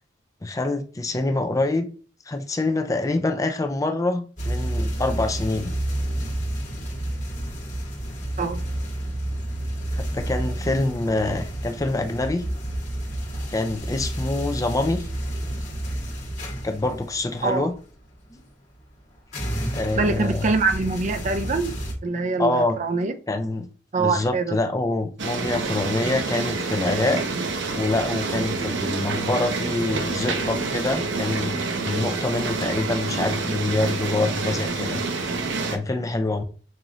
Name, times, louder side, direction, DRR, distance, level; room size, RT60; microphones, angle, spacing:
voice 1, 0.4-1.9 2.3-5.7 10.1-12.4 13.5-15.1 16.6-17.7 19.7-20.5 22.4-22.8 23.3-23.7 24.0-27.2 27.7-35.0 35.7-36.4, left 2 dB, 20° left, 0.4 m, -25 dB
sound 1, 4.4-18.5 18.7-21.9, right 1 dB, 40° left, 1.5 m, -30 dB
voice 2, 20.0-21.7 22.0-23.1 23.9-24.6, right 3 dB, 40° right, 0.5 m, -24 dB
sound 2, 25.2-35.8, right 3 dB, 85° right, 0.7 m, -27 dB
5.4 x 2.9 x 2.5 m
head